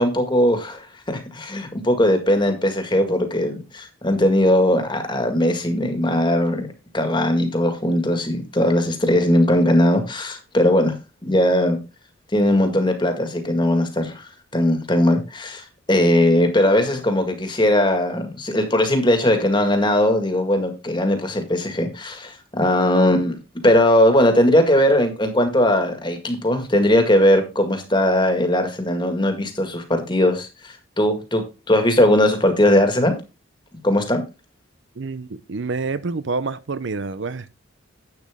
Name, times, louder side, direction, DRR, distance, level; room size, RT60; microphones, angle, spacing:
voice 1, 0.0-6.7 6.9-11.0 11.2-11.8 12.3-14.2 14.5-23.4 23.6-33.1 33.8-34.2, left 1 dB, 20° left, 1.8 m, -19 dB
voice 2, 35.0-37.5, right 4 dB, 60° right, 0.5 m, -27 dB
10.5 x 8.4 x 3.6 m
head